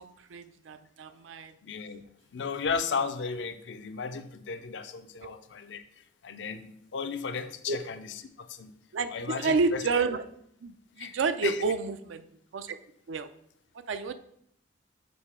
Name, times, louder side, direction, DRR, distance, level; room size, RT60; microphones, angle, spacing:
voice 1, 0.0-1.5 7.7-7.8 8.9-10.2 10.6-12.2 12.5-12.8 13.1-13.3 13.7-14.1, right 4 dB, 85° right, 11 dB, 0.4 m, -30 dB
voice 2, 1.6-2.0 2.3-8.7 9.1-9.8 11.0-11.2 11.4-11.6, left 5 dB, 70° left, 10 dB, 0.5 m, -35 dB
6.3 x 3.2 x 4.8 m, 0.71 s
head